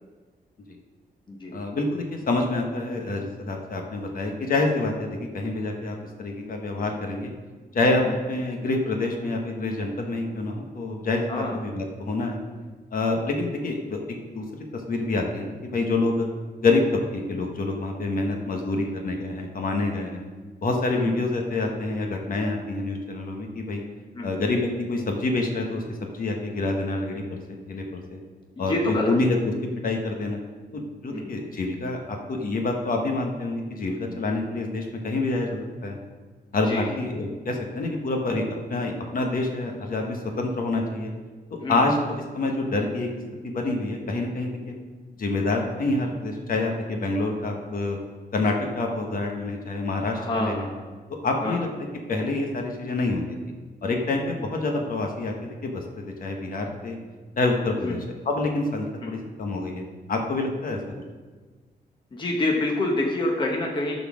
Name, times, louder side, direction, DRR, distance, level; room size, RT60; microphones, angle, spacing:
voice 1, 1.5-7.3 7.7-12.4 12.9-14.0 14.3-16.3 16.6-20.2 20.6-23.8 24.2-27.4 27.7-28.2 28.6-29.4 29.8-30.4 30.7-36.0 36.5-41.1 41.5-43.1 43.4-44.7 45.2-48.0 48.3-50.7 51.2-51.7 52.1-53.2 53.8-55.8 56.2-57.0 57.4-58.0 58.2-59.8 60.1-60.8, left 2 dB, 55° left, 2 dB, 1.2 m, -27 dB
voice 2, 28.6-29.1 31.1-31.3 36.7-36.9 41.6-41.8 50.1-50.7 51.4-51.6 57.8-57.9 62.1-64.0, left 2 dB, 30° left, 0 dB, 0.9 m, -27 dB
12.0 x 4.1 x 6.2 m, 1.4 s
wide cardioid pair, 180°, 17 cm